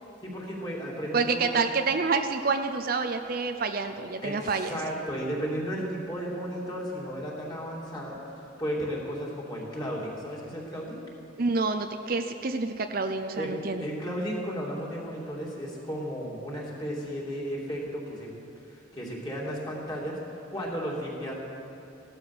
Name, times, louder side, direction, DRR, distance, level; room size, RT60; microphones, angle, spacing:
voice 1, 0.2-1.6 4.2-11.0 13.3-13.5 13.8-18.3 18.7-21.3, equal, 20° left, -4 dB, 3.0 m, -34 dB
voice 2, 1.1-4.8 11.4-13.8, right 4 dB, 45° right, 7 dB, 0.6 m, -28 dB
16.5 x 12.0 x 6.2 m, 2.9 s
head